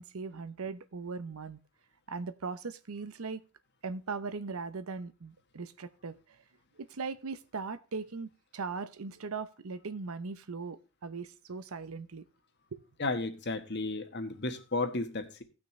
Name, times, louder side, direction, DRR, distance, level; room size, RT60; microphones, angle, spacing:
voice 1, 0.0-1.6 2.1-3.4 3.8-6.2 6.9-12.2 12.7-12.8, right 4 dB, 85° right, 0.7 m, -39 dB
voice 2, 13.0-15.4, left 2 dB, 55° left, 1.4 m, -33 dB
17.0 x 6.1 x 3.2 m
head